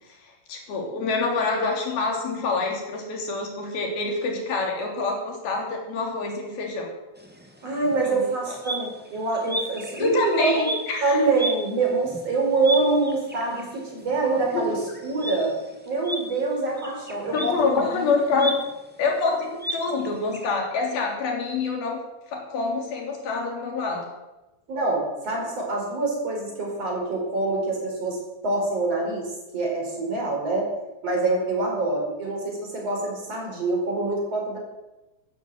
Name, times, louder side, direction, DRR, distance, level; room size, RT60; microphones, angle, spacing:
voice 1, 0.2-6.9 8.1-8.6 10.0-11.2 14.5-14.8 17.3-18.6 19.0-22.0 22.3-24.0, left 3 dB, 90° left, 1 dB, 5.2 m, -26 dB
sound 1, 7.1-20.5, right 1 dB, 5° right, 0.7 m, -36 dB
voice 2, 7.6-10.7 11.0-15.5 15.9-18.1 18.3-18.5 24.7-30.7 31.0-34.6, right 3 dB, 45° right, 0 dB, 5.7 m, -25 dB
14.0 x 12.5 x 7.9 m, 1.0 s
omnidirectional pair, 4.1 m